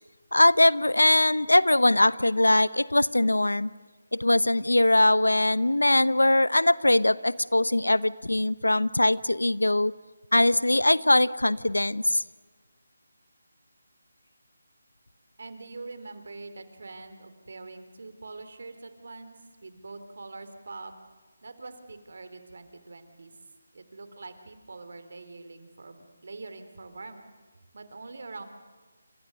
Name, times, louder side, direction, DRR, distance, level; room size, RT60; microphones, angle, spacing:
voice 1, 0.3-3.7 4.1-9.9 10.3-12.2, left 1 dB, 85° left, 19 dB, 0.9 m, -21 dB
voice 2, 15.4-20.9 21.4-23.3 23.7-27.2 27.7-28.5, right 3 dB, 60° right, 10 dB, 3.5 m, -44 dB
28.5 x 28.5 x 6.7 m, 1.4 s
figure-of-eight pair, 155°, 0 cm